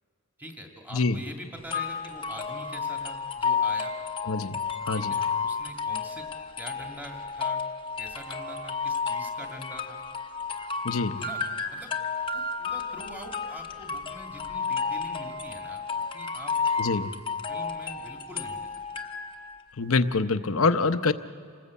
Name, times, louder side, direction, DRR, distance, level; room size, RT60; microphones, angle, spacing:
voice 1, 0.4-3.9 5.1-6.3 6.6-7.6 8.0-10.0 11.2-11.4 11.7-11.9 12.3-15.9 16.1-16.5 16.8-16.9 17.5-18.7, equal, 10° right, 2 dB, 2.1 m, -44 dB
voice 2, 0.9-1.2 4.3-4.6 4.9-5.2 10.8-11.2 16.8-17.1 19.8-21.1, left 4 dB, 70° left, 11 dB, 0.8 m, -25 dB
sound 1, 1.7-19.6, left 5 dB, 25° left, 0.9 m, -32 dB
27.5 x 19.5 x 8.4 m, 2.4 s
head